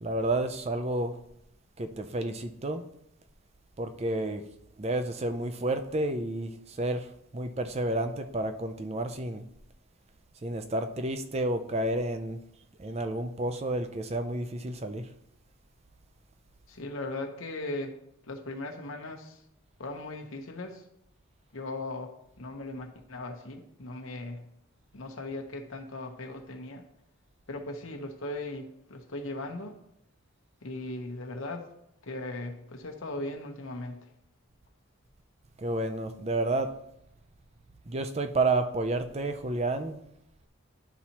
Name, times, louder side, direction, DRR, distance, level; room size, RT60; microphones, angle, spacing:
voice 1, 0.0-1.1 1.8-2.8 3.8-4.4 4.8-7.1 7.3-9.4 10.4-12.4 12.8-15.0 35.6-36.7 37.9-40.0, right 2 dB, 30° right, 8 dB, 0.5 m, -30 dB
voice 2, 16.7-18.0 18.2-19.4 19.8-20.8 21.5-24.5 24.9-26.8 27.5-29.8 30.6-31.7 32.0-34.1, left 2 dB, 70° left, 3 dB, 1.0 m, -38 dB
11.5 x 4.1 x 2.9 m, 0.77 s
head